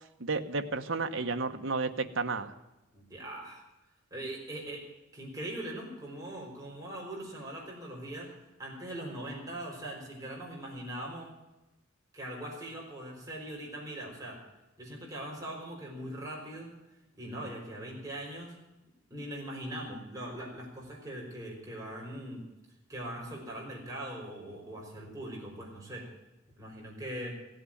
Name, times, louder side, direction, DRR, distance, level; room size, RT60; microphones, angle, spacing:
voice 1, 0.2-2.5, right 3 dB, 80° right, 6 dB, 1.1 m, -32 dB
voice 2, 2.9-3.6 4.1-4.9 5.1-8.3 8.6-11.3 12.1-14.4 14.8-16.7 17.1-18.6 19.1-22.4 22.9-26.1 26.6-27.4, right 1 dB, 15° right, -3 dB, 5.3 m, -41 dB
17.0 x 7.8 x 9.0 m, 1.0 s
head